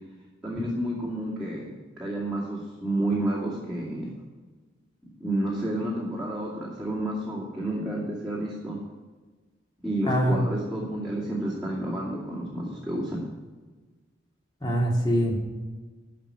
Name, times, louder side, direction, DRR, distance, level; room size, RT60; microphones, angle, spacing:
voice 1, 0.4-4.1 5.2-8.8 9.8-13.3, right 1 dB, ahead, -8 dB, 2.4 m, -30 dB
voice 2, 10.0-10.4 14.6-15.3, equal, 20° left, -2 dB, 2.5 m, -23 dB
13.0 x 5.1 x 8.5 m, 1.3 s
head